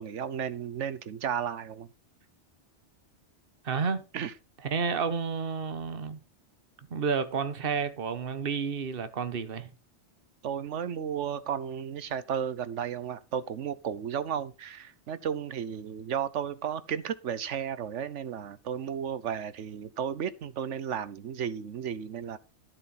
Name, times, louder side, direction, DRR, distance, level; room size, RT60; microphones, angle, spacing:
voice 1, 0.0-1.9 4.1-4.3 10.4-22.4, right 8 dB, 90° right, 1.2 m, -33 dB
voice 2, 3.6-4.0 4.6-6.2 6.9-9.7, right 5 dB, 55° right, 1.3 m, -30 dB
12.5 x 7.5 x 4.3 m
omnidirectional pair, 1.2 m